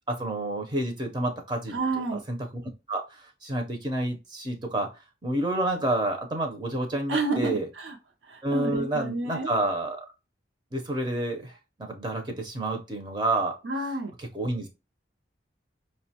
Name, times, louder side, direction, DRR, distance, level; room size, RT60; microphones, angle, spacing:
voice 1, 0.1-2.4 2.9-4.9 5.2-7.7 8.4-10.1 10.7-13.6 14.2-14.7, right 1 dB, 25° right, 3 dB, 0.5 m, -29 dB
voice 2, 1.7-2.2 7.1-8.0 8.2-9.5 13.6-14.1, right 3 dB, 90° right, 3 dB, 0.5 m, -29 dB
5.1 x 2.1 x 2.7 m, 0.27 s
head